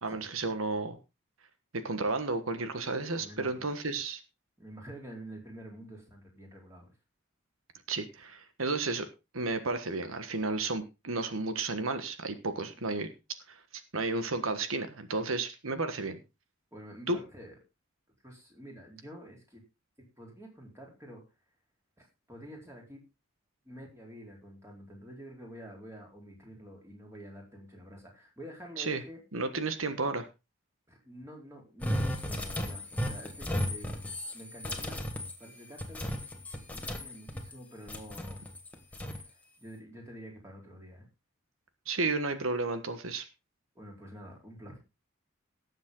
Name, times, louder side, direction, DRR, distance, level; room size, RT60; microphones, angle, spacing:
voice 1, 0.0-1.0 1.7-4.2 7.9-9.1 9.3-13.1 13.5-13.6 13.9-16.2 17.1-17.2 28.8-29.0 29.3-30.3 41.9-43.3, right 3 dB, 85° right, 9 dB, 1.4 m, -32 dB
voice 2, 3.1-3.7 4.6-6.9 16.7-17.6 18.2-19.6 20.2-21.2 22.0-23.0 23.6-29.2 30.9-35.0 35.4-36.1 36.7-38.4 38.9-41.1 43.7-44.8, equal, 15° right, 0 dB, 4.3 m, -48 dB
sound 1, 31.8-37.6 37.9-39.3, equal, 5° left, 1.7 m, -35 dB
18.0 x 7.4 x 3.8 m, 0.27 s
head